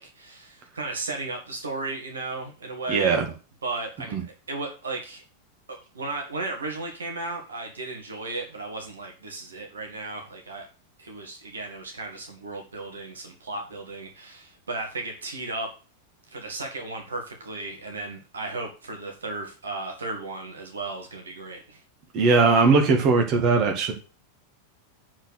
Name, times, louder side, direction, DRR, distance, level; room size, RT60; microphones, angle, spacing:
voice 1, 0.0-3.2 3.6-5.2 5.7-10.7 11.0-15.8 16.3-21.8, right 3 dB, 70° right, 2 dB, 2.1 m, -35 dB
voice 2, 2.9-3.2 4.1-4.2 22.1-23.9, right 4 dB, 40° right, 4 dB, 2.1 m, -19 dB
7.7 x 4.6 x 6.5 m, 0.34 s
figure-of-eight pair, 90°, 0 cm